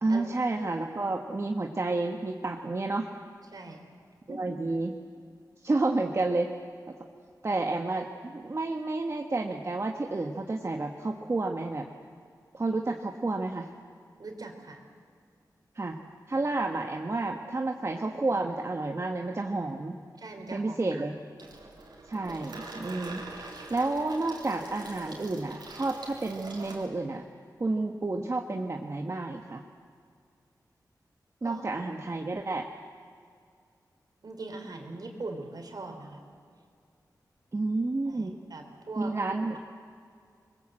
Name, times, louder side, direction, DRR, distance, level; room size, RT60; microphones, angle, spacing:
voice 1, 0.0-3.1 4.3-5.0 5.6-6.5 6.9-7.0 7.4-11.9 12.5-13.7 15.7-16.0 16.3-20.0 20.5-21.1 22.1-27.2 27.6-29.6 31.4-32.7 37.5-38.4 39.0-39.6, right 2 dB, 40° right, 2 dB, 1.4 m, -30 dB
voice 2, 3.5-3.8 4.3-4.4 14.2-14.8 20.2-21.1 31.4-31.6 34.2-36.2 38.0-39.1, right 3 dB, 65° right, 4 dB, 3.9 m, -41 dB
Water tap faucet / Sink (filling or washing), 21.4-26.9, right 2 dB, 85° right, 4.1 m, -44 dB
26.5 x 21.5 x 7.8 m, 2.2 s
wide cardioid pair, 70°, 7 cm